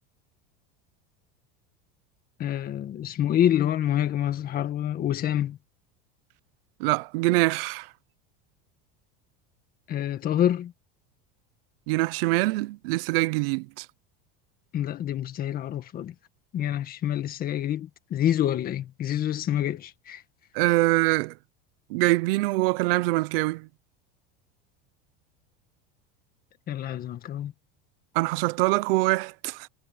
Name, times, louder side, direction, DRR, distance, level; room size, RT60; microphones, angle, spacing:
voice 1, 2.4-5.6 9.9-10.7 14.7-16.1 16.5-20.2 26.7-27.5, left 11 dB, 30° left, 1.8 m, -27 dB
voice 2, 6.8-7.9 11.9-13.9 20.5-21.3 21.9-23.7 28.1-29.7, right 21 dB, 75° right, 0.8 m, -24 dB
cardioid pair, 160°, 29 cm